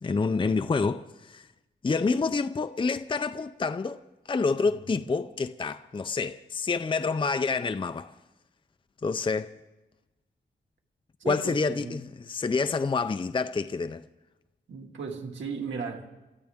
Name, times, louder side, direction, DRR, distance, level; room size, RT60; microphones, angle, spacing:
voice 1, 0.0-1.5 1.8-4.0 4.3-8.1 9.0-9.5 11.3-14.0, left 4 dB, 25° left, 0.5 m, -28 dB
voice 2, 4.6-5.0 11.2-12.0 14.7-16.1, right 5 dB, 85° right, 2.0 m, -36 dB
28.5 x 14.0 x 3.6 m
wide cardioid pair, 90°, 19 cm